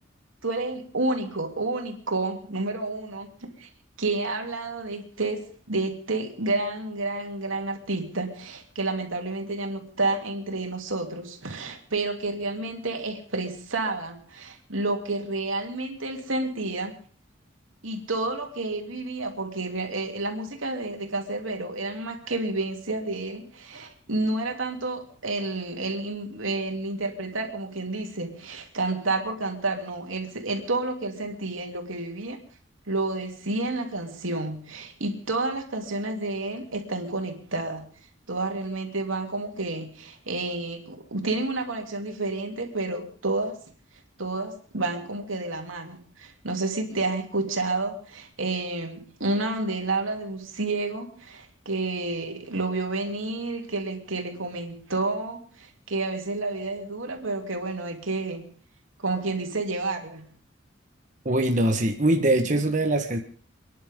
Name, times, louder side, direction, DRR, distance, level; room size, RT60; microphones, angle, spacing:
voice 1, 0.4-3.7 4.0-5.4 5.7-17.0 17.8-32.4 32.9-37.9 38.3-43.6 44.2-58.5 59.0-60.2, right 2 dB, 90° right, 3 dB, 3.1 m, -30 dB
voice 2, 61.2-63.2, right 1 dB, 40° right, 4 dB, 1.4 m, -22 dB
29.5 x 11.0 x 3.8 m, 0.43 s
head